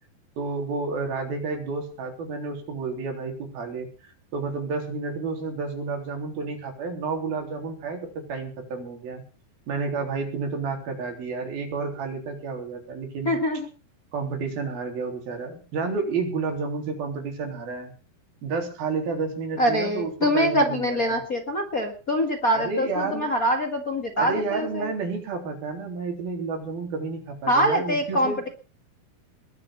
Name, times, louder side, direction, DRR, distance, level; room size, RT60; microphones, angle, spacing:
voice 1, 0.4-9.2 9.7-13.4 14.1-17.9 18.4-21.2 22.5-23.3 24.2-28.4, right 4 dB, 65° right, 4 dB, 5.4 m, -30 dB
voice 2, 13.2-13.7 19.6-24.9 27.5-28.5, equal, 45° left, 4 dB, 1.1 m, -24 dB
21.0 x 7.8 x 7.1 m, 0.37 s
omnidirectional pair, 4.6 m